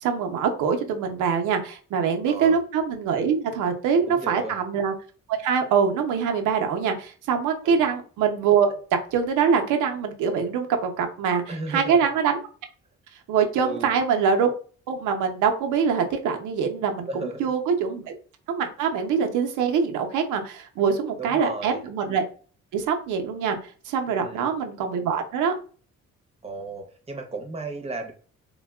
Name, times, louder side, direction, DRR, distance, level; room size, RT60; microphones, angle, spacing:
voice 1, 0.0-4.9 5.3-12.4 13.3-14.5 14.9-18.1 18.5-22.2 22.7-23.6 23.9-25.5, right 6 dB, 80° right, 4 dB, 0.6 m, -24 dB
voice 2, 2.2-2.6 4.1-4.6 7.6-7.9 11.5-12.1 13.6-14.0 17.1-17.5 21.2-21.8 24.1-24.5 26.4-28.1, right 2 dB, 20° right, 3 dB, 0.7 m, -34 dB
3.4 x 2.2 x 2.2 m, 0.40 s
cardioid pair, 90°, 30 cm